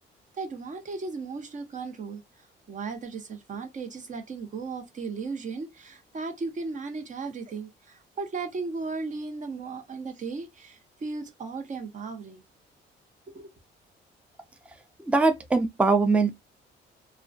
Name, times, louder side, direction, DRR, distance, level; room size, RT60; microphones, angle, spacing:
voice 1, 0.3-2.2 2.7-12.4 13.3-13.5, right 4 dB, 40° right, 0.7 m, -36 dB
voice 2, 15.1-16.3, right 3 dB, 5° right, 0.4 m, -22 dB
2.2 x 2.1 x 2.5 m
cardioid pair, 90°, 20 cm